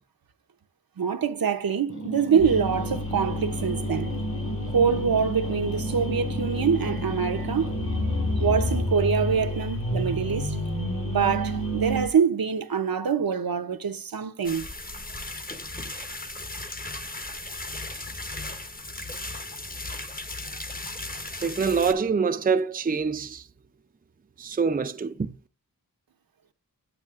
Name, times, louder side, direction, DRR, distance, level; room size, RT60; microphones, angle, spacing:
voice 1, 1.0-4.1 4.7-7.7 8.4-10.6 11.0-14.7, right 6 dB, 80° right, 0.8 m, -25 dB
sound 1, 1.9-8.9, right 2 dB, 55° left, 4.2 m, -35 dB
sound 2, 2.4-12.1, left 1 dB, 70° left, 3.2 m, -30 dB
sound 3, 14.4-21.9, left 2 dB, 25° left, 1.0 m, -36 dB
voice 2, 21.4-23.4 24.4-25.3, right 5 dB, 25° right, 0.5 m, -25 dB
9.0 x 8.5 x 2.4 m
wide cardioid pair, 65°, 35 cm